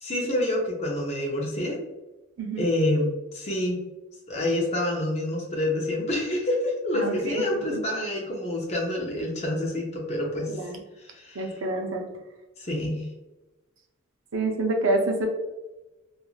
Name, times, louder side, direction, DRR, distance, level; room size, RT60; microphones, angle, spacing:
voice 1, 0.0-1.8 2.6-3.8 4.3-10.6 11.0-11.5 12.6-13.0, left 1 dB, 30° left, -2 dB, 0.5 m, -27 dB
voice 2, 6.9-7.4 7.7-7.8 10.5-10.8 11.3-12.1 14.3-15.3, right 2 dB, 85° right, 2 dB, 0.5 m, -27 dB
3.0 x 2.4 x 2.3 m, 1.1 s
head